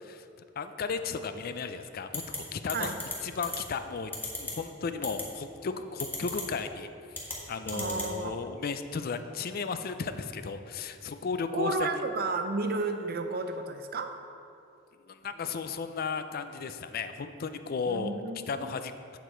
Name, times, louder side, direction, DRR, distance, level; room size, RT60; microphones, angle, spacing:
voice 1, 0.6-2.9 3.2-6.9 7.2-12.0 15.0-18.1 18.5-19.2, left 5 dB, 50° left, 10 dB, 0.4 m, -35 dB
sound 1, 2.1-2.4 2.7-3.1 3.4-3.6 4.1-4.5 5.0-5.2 6.0-6.4 7.1-7.4 7.7-8.1, left 3 dB, 10° left, 1.5 m, -34 dB
voice 2, 7.7-8.4 11.5-14.2 17.9-18.7, right 3 dB, 55° right, 7 dB, 0.6 m, -32 dB
8.2 x 7.2 x 4.4 m, 2.5 s
head